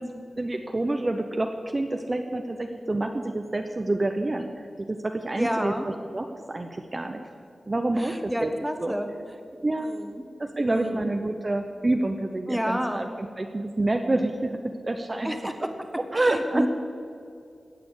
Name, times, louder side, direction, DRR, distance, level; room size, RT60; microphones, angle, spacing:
voice 1, 0.0-7.2 7.7-8.5 8.8-9.0 9.6-9.9 10.4-15.3 16.1-16.7, right 2 dB, 30° right, 5 dB, 0.8 m, -28 dB
voice 2, 5.4-5.8 8.0-9.1 9.8-10.2 10.6-11.1 12.5-13.1 15.2-15.5 16.1-16.7, equal, ahead, 6 dB, 1.3 m, -30 dB
17.5 x 6.8 x 8.2 m, 2.4 s
wide cardioid pair, 110°, 0 cm